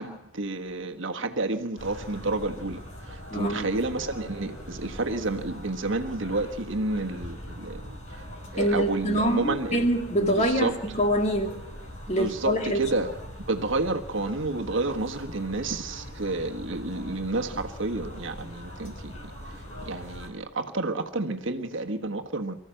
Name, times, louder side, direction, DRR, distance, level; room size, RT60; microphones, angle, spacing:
voice 1, 0.0-7.8 8.1-8.2 8.5-9.9 10.2-10.8 12.1-13.1 13.5-19.3 19.8-22.5, right 2 dB, 60° right, 4 dB, 1.4 m, -30 dB
sound 1, 1.8-20.3, equal, 65° left, 5.0 m, -42 dB
voice 2, 3.3-3.7 8.6-11.6 12.1-12.8, equal, 30° left, 3 dB, 2.4 m, -25 dB
24.0 x 14.0 x 7.7 m, 0.86 s
head